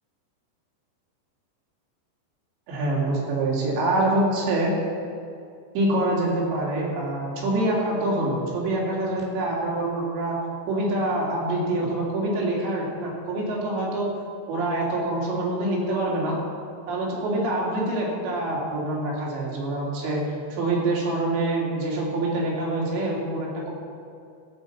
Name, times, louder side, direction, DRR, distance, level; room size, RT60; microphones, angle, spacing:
voice 1, 2.7-4.7 5.7-10.4 10.7-14.1 14.5-16.3 16.9-20.2 20.5-23.7, right 2 dB, 80° right, -4 dB, 4.6 m, -25 dB
16.0 x 5.4 x 7.0 m, 2.4 s
omnidirectional pair, 5.1 m